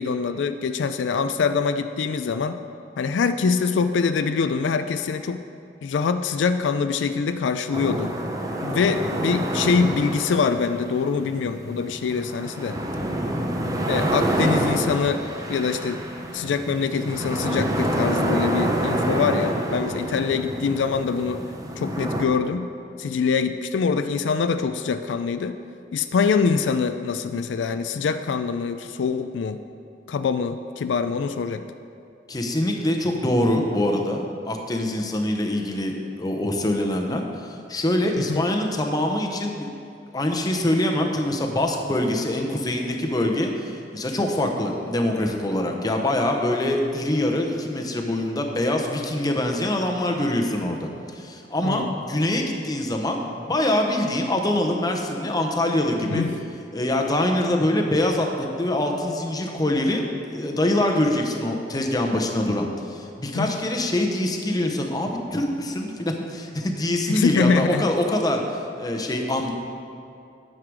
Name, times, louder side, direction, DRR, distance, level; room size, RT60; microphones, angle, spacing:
voice 1, 0.0-2.6 3.0-5.4 5.8-8.1 8.6-12.8 13.9-15.2 15.5-16.0 16.3-21.4 21.8-22.7 23.0-25.6 25.9-29.6 30.1-31.7 38.2-38.5 51.6-51.9 56.0-56.3 63.3-63.5 67.1-67.8, left 5 dB, 85° left, 9 dB, 0.4 m, -24 dB
sound 1, 7.7-22.3, right 1 dB, 20° right, 0.7 m, -27 dB
voice 2, 32.3-39.7 40.1-56.3 56.7-60.0 60.3-68.4 68.8-69.5, left 1 dB, 20° left, 2 dB, 0.8 m, -24 dB
9.6 x 6.6 x 4.7 m, 2.7 s
head